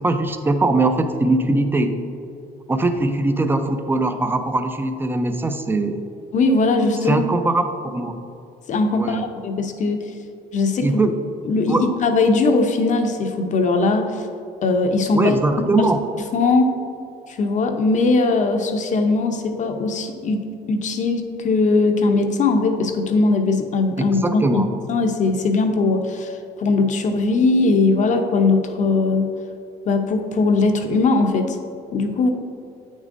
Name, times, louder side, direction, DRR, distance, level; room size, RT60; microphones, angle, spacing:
voice 1, 0.0-2.0 2.7-6.0 7.0-8.2 8.9-9.3 10.8-11.1 11.7-11.9 15.1-16.0 24.0-24.7, right 2 dB, 10° right, 8 dB, 0.5 m, -21 dB
voice 2, 6.3-7.3 8.7-10.0 10.5-11.0 11.4-14.3 14.6-15.4 15.8-15.9 16.3-16.7 17.3-20.4 20.7-24.6 24.9-26.3 26.6-29.3 29.9-31.6 31.9-32.3, left 3 dB, 45° left, 5 dB, 0.7 m, -19 dB
8.4 x 6.3 x 2.6 m, 2.6 s
cardioid pair, 110°, 17 cm